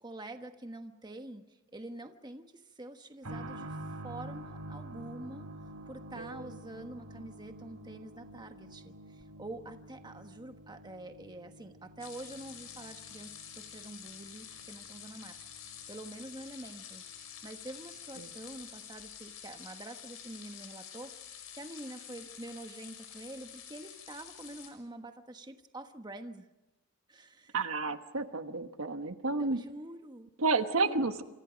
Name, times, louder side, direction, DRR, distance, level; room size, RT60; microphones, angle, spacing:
voice 1, 0.0-1.4 1.7-5.5 5.9-26.5 27.1-27.5 29.3-30.3 30.9-31.0, right 1 dB, 20° right, 6 dB, 1.3 m, -46 dB
sound 1, 3.2-17.7 17.9-18.0 19.0-19.1, right 1 dB, 85° right, 4.1 m, -48 dB
voice 2, 6.2-6.6 18.2-18.3 27.5-29.6 30.4-31.2, right 3 dB, 65° right, 8 dB, 1.3 m, -31 dB
sound 2, 12.0-24.7, left 8 dB, 75° left, 5.6 m, -48 dB
27.5 x 27.0 x 5.2 m, 1.0 s
head